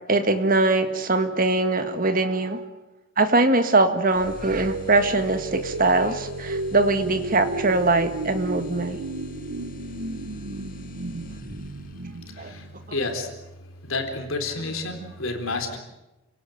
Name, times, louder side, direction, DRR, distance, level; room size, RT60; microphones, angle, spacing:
voice 1, 0.1-2.6 3.2-9.0 12.4-12.5, right 2 dB, 40° right, 8 dB, 1.8 m, -22 dB
sound 1, 4.1-12.1, equal, 40° left, 2.1 m, -41 dB
sound 2, 4.2-13.1, right 2 dB, 75° right, 1.0 m, -34 dB
voice 2, 12.3-13.3 13.8-15.8, left 3 dB, 65° left, 5 dB, 4.0 m, -30 dB
28.5 x 18.0 x 8.0 m, 1.0 s
head